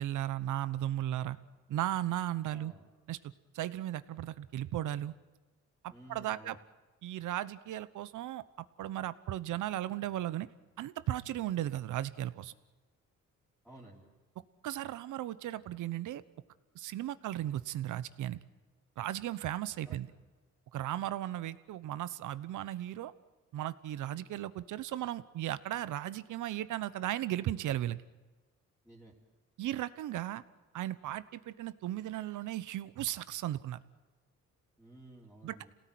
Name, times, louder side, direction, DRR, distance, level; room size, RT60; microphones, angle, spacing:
voice 1, 0.0-1.4 1.7-2.7 3.1-3.2 3.5-5.1 5.8-6.6 7.0-8.4 8.8-10.5 10.8-12.5 14.6-16.2 16.7-18.4 19.0-20.1 20.7-23.1 23.5-28.0 29.6-30.4 30.7-33.8 35.4-35.6, right 13 dB, 80° right, 16 dB, 1.1 m, -36 dB
voice 2, 2.5-2.8 5.9-6.6 13.6-14.1 19.9-20.0 28.8-29.1 34.8-35.7, right 1 dB, ahead, -5 dB, 3.9 m, -53 dB
27.5 x 18.0 x 9.3 m, 1.3 s
cardioid pair, 90°, 30 cm